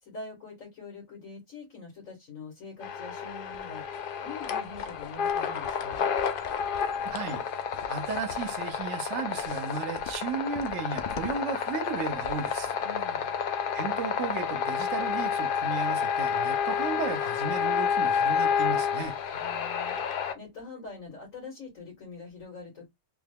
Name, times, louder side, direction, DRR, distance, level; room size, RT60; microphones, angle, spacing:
voice 1, 0.0-6.1 12.8-13.3 19.3-22.9, left 4 dB, 90° left, 1.9 m, -44 dB
sound 1, 2.8-20.3, left 7 dB, 60° left, 0.6 m, -30 dB
voice 2, 7.0-7.4 7.9-12.7 13.7-19.1, right 5 dB, 70° right, 0.9 m, -34 dB
3.4 x 2.2 x 3.3 m
omnidirectional pair, 1.3 m